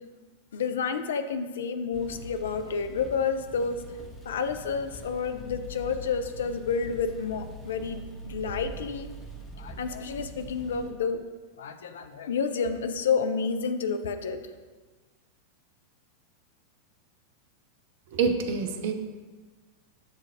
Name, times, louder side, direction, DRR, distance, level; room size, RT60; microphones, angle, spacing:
voice 1, 0.5-3.8 4.3-9.1 9.6-11.2 11.6-14.4, left 5 dB, 60° left, 8 dB, 0.3 m, -30 dB
sound 1, 1.9-10.9, equal, 10° left, 0.8 m, -43 dB
voice 2, 18.1-18.9, right 5 dB, 50° right, 6 dB, 0.4 m, -26 dB
7.1 x 2.4 x 2.7 m, 1.3 s
figure-of-eight pair, 90°, 0 cm